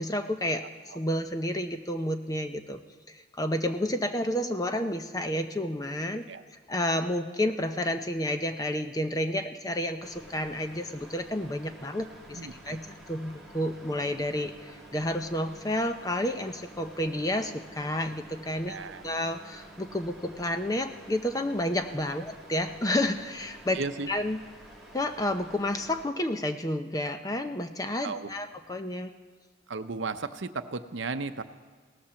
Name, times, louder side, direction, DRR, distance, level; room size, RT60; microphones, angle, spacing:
voice 1, 0.0-2.8 3.1-6.3 6.7-12.4 12.7-18.8 19.0-23.8 24.1-24.4 24.9-29.1, left 1 dB, 20° left, 8 dB, 0.6 m, -30 dB
sound 1, 10.0-26.0, right 1 dB, ahead, 2.0 m, -50 dB
voice 2, 12.3-12.8 18.6-19.0 23.7-24.1 27.9-28.3 29.7-31.4, right 4 dB, 75° right, 9 dB, 0.7 m, -35 dB
17.5 x 11.5 x 7.0 m, 1.5 s
head